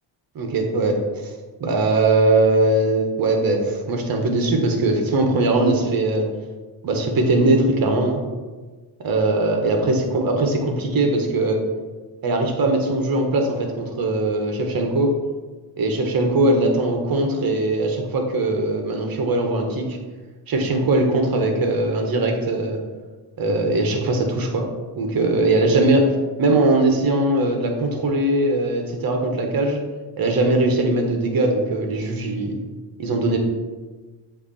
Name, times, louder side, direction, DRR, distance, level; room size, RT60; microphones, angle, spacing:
voice 1, 0.3-1.3 1.6-6.3 6.8-8.2 9.0-11.6 12.2-15.2 15.8-20.0 20.5-22.8 23.4-24.7 25.0-29.8 30.2-32.6 33.0-33.4, right 2 dB, 50° right, 3 dB, 1.2 m, -20 dB
8.0 x 2.8 x 4.2 m, 1.3 s
cardioid pair, 110°, 47 cm